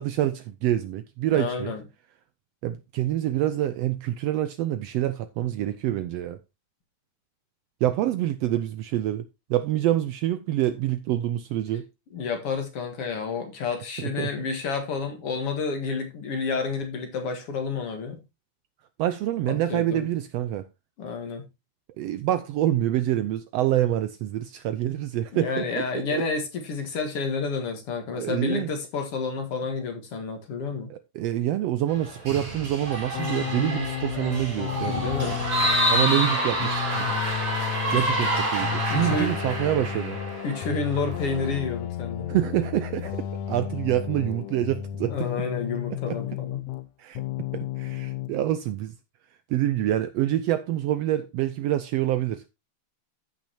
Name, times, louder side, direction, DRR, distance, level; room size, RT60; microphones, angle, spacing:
voice 1, 0.0-1.7 2.6-6.4 7.8-9.2 9.5-11.9 14.0-14.3 19.0-20.7 22.0-26.2 28.2-28.7 30.9-35.3 35.9-37.1 37.9-40.2 42.3-45.3 46.1-46.2 47.0-47.2 47.5-48.9 49.5-52.5, right 13 dB, 75° right, 1.5 m, -26 dB
voice 2, 1.3-1.8 12.1-18.2 19.5-20.1 21.0-21.4 25.3-30.9 34.8-35.4 38.9-39.3 40.4-42.3 45.1-46.6, left 4 dB, 55° left, 2.4 m, -30 dB
sound 1, 31.9-41.6, right 1 dB, 50° right, 4.6 m, -28 dB
sound 2, 33.1-46.9 47.2-48.3, left 11 dB, 75° left, 1.9 m, -33 dB
14.5 x 5.9 x 2.8 m
omnidirectional pair, 3.3 m